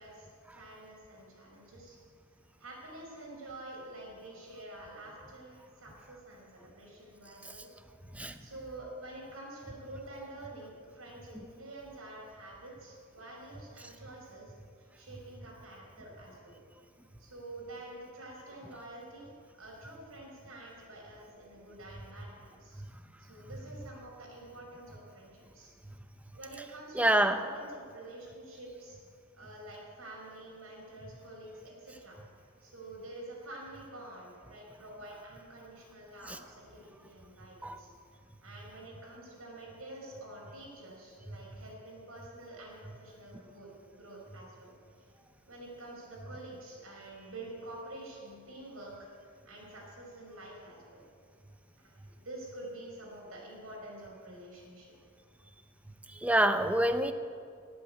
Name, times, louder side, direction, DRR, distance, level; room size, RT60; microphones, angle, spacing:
voice 1, 0.0-2.0 2.6-7.7 8.4-16.6 17.2-22.8 23.2-25.7 26.3-29.0 29.3-32.2 32.6-37.9 38.4-44.7 45.5-51.0 51.8-54.9, right 1 dB, 80° right, -3 dB, 5.6 m, -48 dB
voice 2, 26.9-27.4 36.3-36.4 37.6-37.8 56.1-57.1, right 1 dB, 5° right, 9 dB, 0.7 m, -27 dB
19.0 x 8.7 x 8.5 m, 2.1 s
head